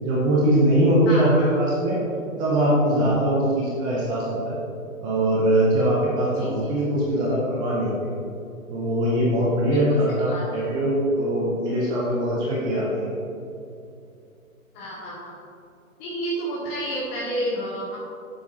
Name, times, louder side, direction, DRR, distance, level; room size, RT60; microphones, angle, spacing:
voice 1, 0.0-2.0 2.4-4.6 5.0-7.9 8.7-13.1, right 1 dB, 10° right, -5 dB, 0.7 m, -22 dB
voice 2, 1.1-1.5 6.3-6.7 9.7-10.4 14.7-15.4 16.0-18.0, equal, 20° left, -4 dB, 1.2 m, -31 dB
12.5 x 7.6 x 3.0 m, 2.6 s
figure-of-eight pair, 125°, 42 cm